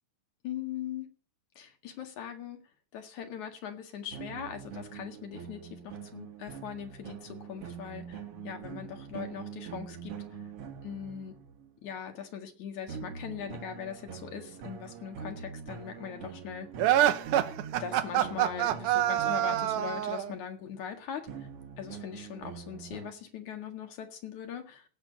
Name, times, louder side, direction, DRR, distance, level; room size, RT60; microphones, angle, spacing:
voice 1, 0.4-1.1 1.6-2.6 2.9-10.1 10.8-11.4 11.8-16.7 17.8-21.5 21.8-24.8, left 8 dB, 65° left, 6 dB, 3.2 m, -40 dB
sound 1, 4.1-11.7 12.9-20.4 21.3-23.1, right 7 dB, 55° right, 1.9 m, -44 dB
sound 2, 16.8-20.3, right 12 dB, 80° right, 2.5 m, -26 dB
17.0 x 6.9 x 8.0 m, 0.39 s
omnidirectional pair, 3.7 m